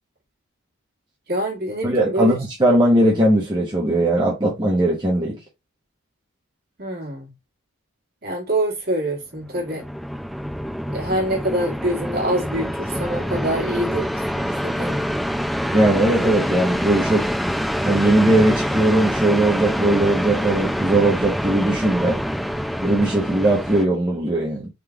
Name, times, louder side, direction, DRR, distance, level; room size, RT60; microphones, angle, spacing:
voice 1, 1.3-2.3 6.8-7.3 8.2-9.8 10.9-15.1, right 1 dB, 45° right, 1.7 m, -25 dB
voice 2, 1.8-5.4 15.7-17.3 17.8-22.2 22.8-24.7, right 1 dB, 20° right, 0.9 m, -19 dB
sound 1, 9.4-23.9, equal, ahead, 0.5 m, -25 dB
3.8 x 3.2 x 3.4 m
head